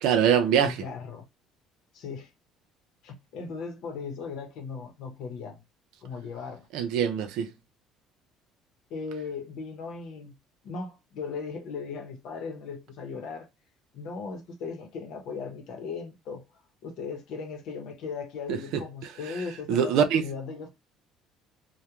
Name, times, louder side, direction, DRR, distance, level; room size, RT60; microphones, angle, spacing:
voice 1, 0.0-0.7 6.7-7.5 18.5-18.6 19.7-20.2, right 8 dB, 80° right, 0.5 m, -23 dB
voice 2, 0.6-1.2 1.9-2.3 3.0-5.6 6.0-6.7 8.9-10.3 10.6-13.5 13.9-16.4 16.8-20.7, left 5 dB, 65° left, 0.8 m, -37 dB
2.3 x 2.2 x 2.9 m
cardioid pair, 145°, 0 cm